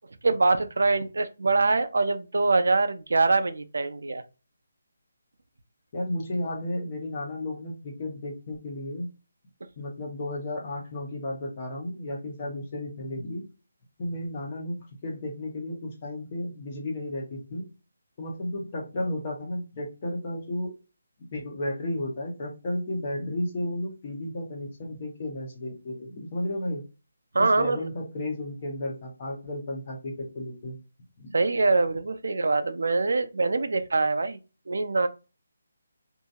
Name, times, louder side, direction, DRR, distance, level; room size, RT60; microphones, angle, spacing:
voice 1, 0.2-4.2 27.3-27.8 31.3-34.4 34.7-35.1, right 3 dB, 75° right, 0.5 m, -24 dB
voice 2, 5.9-9.1 9.8-13.4 14.0-17.6 18.2-20.7 21.2-26.8 27.4-30.8 31.2-31.3, left 1 dB, 25° left, 0.8 m, -33 dB
2.8 x 2.6 x 2.3 m
hypercardioid pair, 175°, 0 cm